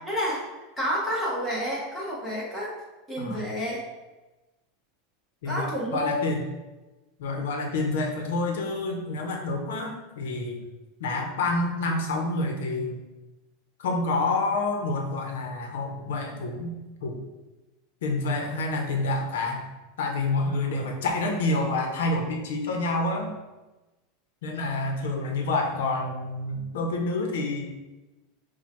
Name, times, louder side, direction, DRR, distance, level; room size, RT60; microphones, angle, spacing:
voice 1, 0.1-0.4 0.8-2.7 3.1-3.8 5.4-6.3, equal, 5° left, -6 dB, 1.1 m, -29 dB
voice 2, 5.4-6.4 7.2-10.6 11.0-13.0 13.8-16.7 17.0-17.2 18.0-19.6 20.0-23.3 24.4-27.7, left 2 dB, 90° left, 2 dB, 0.8 m, -28 dB
4.4 x 2.2 x 4.4 m, 1.1 s
supercardioid pair, 170°, 0 cm